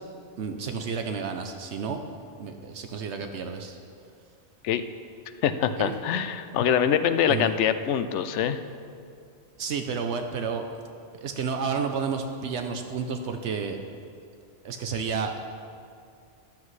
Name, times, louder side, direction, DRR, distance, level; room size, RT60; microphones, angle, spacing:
voice 1, 0.4-2.0 2.4-3.8 5.8-5.9 7.3-7.5 9.6-10.6 11.2-13.8 14.6-15.6, right 5 dB, 75° right, 6 dB, 1.0 m, -31 dB
voice 2, 5.4-8.6, left 8 dB, 80° left, 11 dB, 0.9 m, -24 dB
13.5 x 12.0 x 3.2 m, 2.4 s
omnidirectional pair, 1.2 m